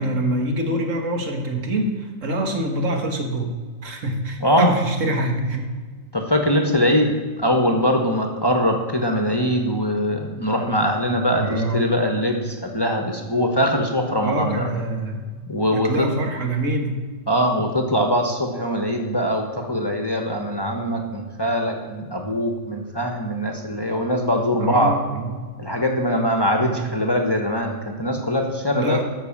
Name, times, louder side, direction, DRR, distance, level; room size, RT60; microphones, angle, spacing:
voice 1, 0.0-3.5 3.8-5.7 11.4-11.8 14.2-15.4 15.7-17.0 24.6-25.4 26.6-26.8 28.7-29.0, right 1 dB, 75° right, 3 dB, 1.8 m, -25 dB
voice 2, 4.4-4.7 6.1-14.6 15.5-16.1 17.3-25.0 25.6-29.0, equal, 20° left, 3 dB, 1.0 m, -22 dB
12.5 x 5.8 x 7.3 m, 1.4 s
omnidirectional pair, 1.3 m